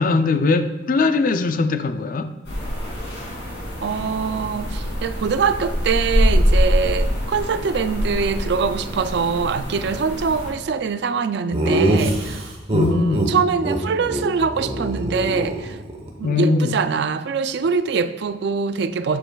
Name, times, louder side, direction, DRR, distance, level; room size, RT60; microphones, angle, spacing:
voice 1, 0.0-2.3 12.7-13.3 16.2-16.7, left 3 dB, 45° left, 0.4 m, -20 dB
sound 1, 2.4-10.5, equal, 60° left, 2.6 m, -24 dB
voice 2, 3.8-12.5 12.9-15.8 16.2-19.2, right 5 dB, 55° right, 0.3 m, -23 dB
Laughter, 11.5-13.3 13.6-13.8 14.1-14.3 14.5-16.1, right 1 dB, 30° right, 1.0 m, -23 dB
8.6 x 7.7 x 2.3 m
head